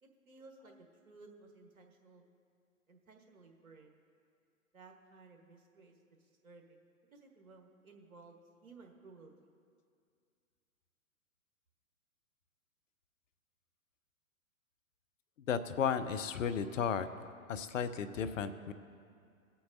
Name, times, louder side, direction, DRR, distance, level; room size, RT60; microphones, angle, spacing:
voice 1, 0.0-2.3 2.9-3.9 4.7-6.8 7.1-9.5, right 3 dB, 75° right, 2 dB, 1.5 m, -58 dB
voice 2, 15.5-17.1 17.5-18.7, left 7 dB, 65° left, 11 dB, 0.7 m, -34 dB
19.0 x 8.4 x 2.7 m, 2.3 s
figure-of-eight pair, 115°, 42 cm